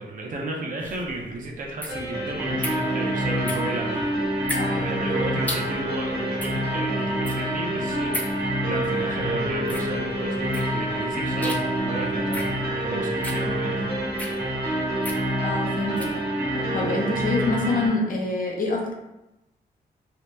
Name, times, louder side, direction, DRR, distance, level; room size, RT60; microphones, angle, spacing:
voice 1, 0.0-4.1 4.7-14.4, right 2 dB, 55° right, 0 dB, 0.6 m, -34 dB
sound 1, 0.8-16.2, left 1 dB, 10° left, 0.4 m, -37 dB
sound 2, 1.9-17.9, right 1 dB, 80° right, 1.2 m, -26 dB
voice 2, 4.6-4.9 15.4-16.2 16.5-18.9, left 2 dB, 55° left, -1 dB, 0.6 m, -26 dB
2.8 x 2.1 x 3.3 m, 0.95 s
wide cardioid pair, 115°, 17 cm